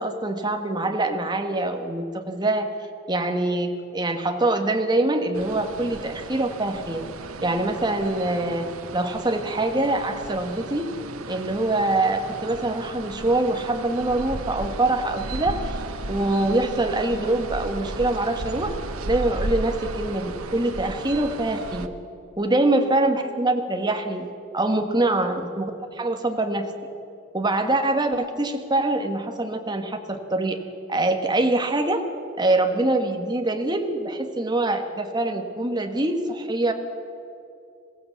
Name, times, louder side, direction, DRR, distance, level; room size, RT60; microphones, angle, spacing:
voice 1, 0.0-2.7 3.1-7.0 7.4-8.7 8.9-10.9 11.3-15.8 16.1-18.8 19.1-21.9 22.4-26.7 27.3-30.6 30.9-32.0 32.4-36.7, right 2 dB, 20° right, 5 dB, 1.4 m, -24 dB
sound 1, 5.3-21.9, right 2 dB, 85° right, 1.1 m, -35 dB
21.0 x 15.5 x 8.4 m, 2.6 s
head